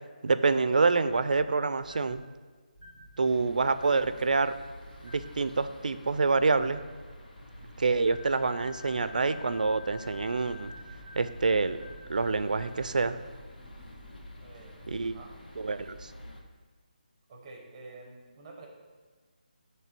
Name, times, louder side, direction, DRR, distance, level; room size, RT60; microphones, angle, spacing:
voice 1, 0.2-2.2 3.2-4.5 5.0-6.8 7.8-10.7 11.2-11.8 12.1-13.2 14.9-15.2 15.6-16.1, right 4 dB, 60° right, 13 dB, 0.4 m, -27 dB
sound 1, 1.1-1.4 1.8-2.2 2.7-3.1 3.8-4.1 5.0-5.3 6.5-6.8 8.1-12.8, left 4 dB, 50° left, 2.2 m, -50 dB
sound 2, 3.2-16.4, equal, 75° left, 1.2 m, -48 dB
voice 2, 14.4-15.3 17.3-18.7, right 3 dB, 10° right, 1 dB, 0.9 m, -49 dB
7.5 x 3.2 x 5.9 m, 1.4 s
hypercardioid pair, 175°, 5 cm